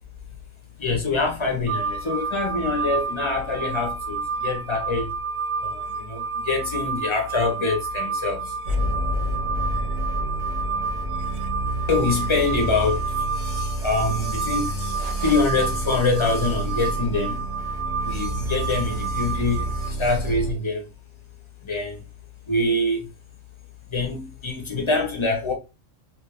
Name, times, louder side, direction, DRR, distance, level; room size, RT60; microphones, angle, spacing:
voice 1, 0.8-5.1 5.6-8.6 11.9-17.4 18.0-20.9 21.6-22.0 22.5-23.1 23.9-25.5, left 3 dB, 30° left, 0.6 m, -25 dB
sound 1, 1.7-19.9, right 5 dB, 70° right, 0.8 m, -30 dB
sound 2, 8.6-20.5, right 1 dB, 45° right, 0.6 m, -29 dB
2.5 x 2.3 x 3.3 m
omnidirectional pair, 1.4 m